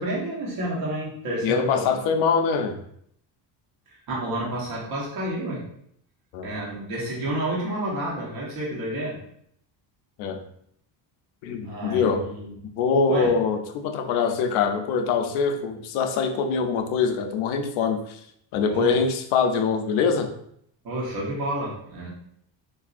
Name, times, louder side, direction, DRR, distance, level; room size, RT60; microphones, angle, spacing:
voice 1, 0.0-1.8 3.9-5.6 6.4-9.2 11.6-12.5 13.1-13.3 18.7-19.0 20.8-22.1, right 1 dB, 50° right, -4 dB, 1.1 m, -30 dB
voice 2, 1.4-2.8 6.3-6.5 10.2-10.4 11.4-12.3 12.8-18.2 18.5-20.3, left 5 dB, 85° left, 6 dB, 0.6 m, -23 dB
3.9 x 2.6 x 2.5 m, 0.69 s
cardioid pair, 165°, 46 cm